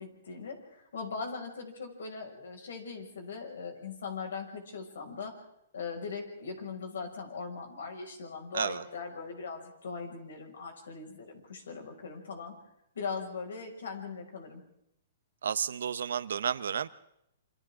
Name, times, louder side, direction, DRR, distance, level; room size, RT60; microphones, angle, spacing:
voice 1, 0.0-5.4 5.7-12.6 12.9-14.6, left 5 dB, 80° left, 3 dB, 6.1 m, -40 dB
voice 2, 15.4-16.9, right 8 dB, 80° right, 15 dB, 0.9 m, -31 dB
28.0 x 26.5 x 3.8 m, 0.79 s
hypercardioid pair, 140°, 0 cm